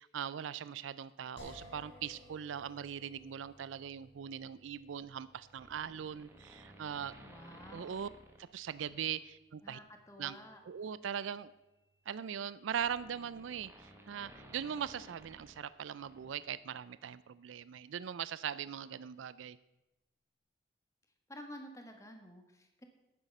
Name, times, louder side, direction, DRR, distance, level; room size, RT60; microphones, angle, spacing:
voice 1, 0.0-7.1 7.7-8.1 8.4-9.8 10.2-10.4 10.7-11.5 12.1-19.6, right 8 dB, 85° right, 17 dB, 0.4 m, -40 dB
sound 1, 1.4-14.4, left 1 dB, 85° left, 4.7 m, -61 dB
sound 2, 5.5-9.2 9.7-9.9 11.1-16.5 16.7-16.8, right 1 dB, 10° right, 1.3 m, -57 dB
voice 2, 7.2-8.0 9.6-10.6 21.3-22.8, left 1 dB, 15° left, 5 dB, 1.4 m, -51 dB
11.5 x 9.1 x 5.4 m, 0.97 s
head